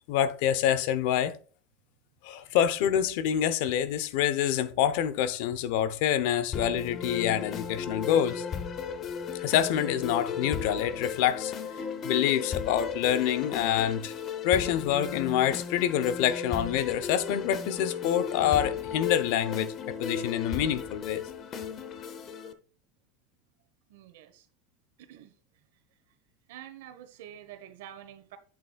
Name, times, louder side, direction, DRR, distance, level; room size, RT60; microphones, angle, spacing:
voice 1, 0.1-1.3 2.2-8.4 9.4-11.5 12.0-14.1 14.4-19.7 20.0-21.2, left 10 dB, 65° left, 0.7 m, -26 dB
sound 1, 6.5-22.5, left 6 dB, 30° left, 0.7 m, -35 dB
voice 2, 23.9-24.4 25.0-25.3 26.5-28.4, right 11 dB, 80° right, 1.1 m, -47 dB
8.2 x 6.6 x 2.3 m
supercardioid pair, 145°, 0 cm